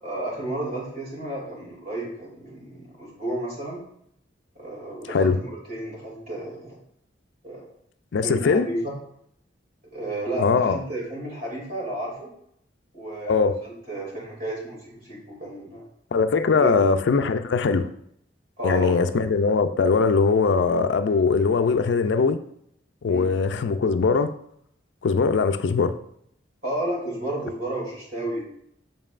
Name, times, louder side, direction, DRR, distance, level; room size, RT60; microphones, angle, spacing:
voice 1, 0.0-3.8 4.5-6.8 7.4-7.7 8.2-8.9 9.9-12.3 12.9-15.9 16.6-16.7 18.6-19.0 23.0-23.3 26.6-28.5, right 1 dB, 50° right, -4 dB, 2.6 m, -32 dB
voice 2, 8.1-8.7 10.4-10.8 13.3-13.6 16.1-17.9 18.6-22.4 23.0-24.3 25.0-25.9, left 4 dB, 70° left, 10 dB, 0.4 m, -21 dB
7.4 x 5.3 x 2.5 m, 0.71 s
head